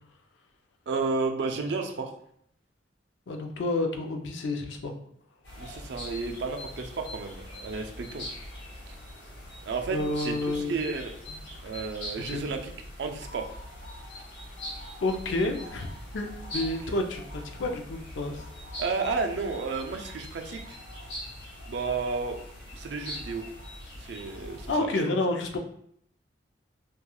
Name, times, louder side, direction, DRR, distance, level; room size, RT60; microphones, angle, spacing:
voice 1, 0.9-2.1 5.6-8.3 8.9-9.0 9.6-11.1 11.6-12.7 13.0-13.5 18.8-20.8 21.6-22.4 22.7-23.5 24.0-24.9, right 4 dB, 65° right, 4 dB, 0.4 m, -32 dB
voice 2, 3.3-4.9 9.9-10.7 12.2-12.4 15.0-15.9 16.1-18.4 24.7-25.6, left 2 dB, 90° left, 4 dB, 0.4 m, -29 dB
sound 1, 5.4-24.7, left 1 dB, 70° left, 0.9 m, -42 dB
2.9 x 2.2 x 2.2 m, 0.67 s
head